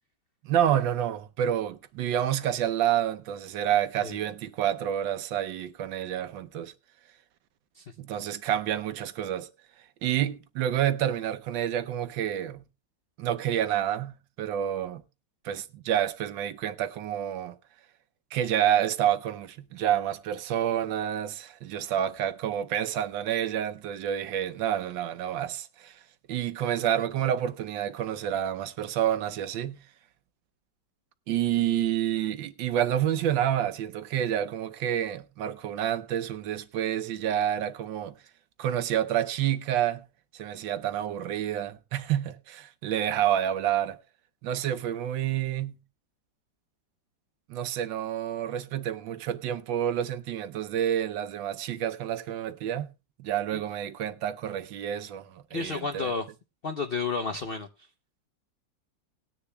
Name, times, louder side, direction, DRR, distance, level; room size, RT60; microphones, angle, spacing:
voice 1, 0.4-6.7 8.0-9.5 10.0-12.6 13.2-15.0 15.4-17.5 18.3-26.0 26.3-29.8 31.3-38.1 38.6-40.1 40.3-44.0 44.4-45.8 47.5-52.9 53.2-56.1, right 10 dB, 85° right, 1.5 m, -28 dB
voice 2, 55.5-56.3 56.6-57.7, left 4 dB, 70° left, 0.5 m, -31 dB
19.5 x 9.9 x 2.3 m
omnidirectional pair, 2.0 m